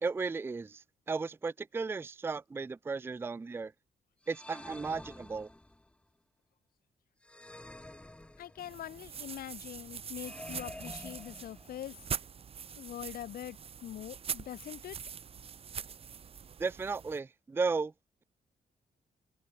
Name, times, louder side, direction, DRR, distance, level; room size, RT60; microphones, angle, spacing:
voice 1, 0.0-3.7 4.3-5.5 16.6-17.9, right 4 dB, 15° right, 0.5 m, -35 dB
sound 1, 4.2-5.9 7.2-8.9 10.1-12.0, left 1 dB, 5° left, 2.2 m, -49 dB
voice 2, 8.4-12.0 12.8-15.0, left 12 dB, 85° left, 2.3 m, -43 dB
sound 2, 8.6-17.2, right 7 dB, 40° right, 3.3 m, -43 dB
wide cardioid pair, 170°, 15 cm